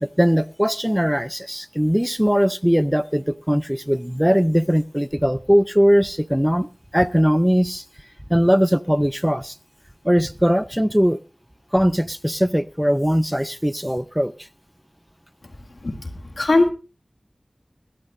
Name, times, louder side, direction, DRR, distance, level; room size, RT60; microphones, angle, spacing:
voice 1, 0.0-6.7 6.9-7.8 8.3-9.5 10.0-11.2 11.7-14.3, equal, 5° right, 15 dB, 0.5 m, -20 dB
voice 2, 16.4-16.7, left 2 dB, 70° left, 5 dB, 2.0 m, -18 dB
20.5 x 12.0 x 2.6 m, 0.31 s
wide cardioid pair, 45°, 0 cm